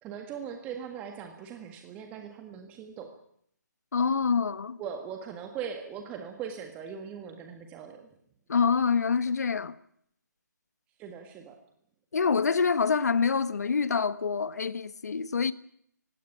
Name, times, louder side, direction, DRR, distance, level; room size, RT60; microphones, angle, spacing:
voice 1, 0.0-3.1 4.8-8.1 11.0-11.6, right 7 dB, 15° right, 1.6 m, -40 dB
voice 2, 3.9-4.8 8.5-9.8 12.1-15.5, left 5 dB, 60° left, 1.3 m, -26 dB
19.5 x 16.5 x 9.9 m
figure-of-eight pair, 155°, 10 cm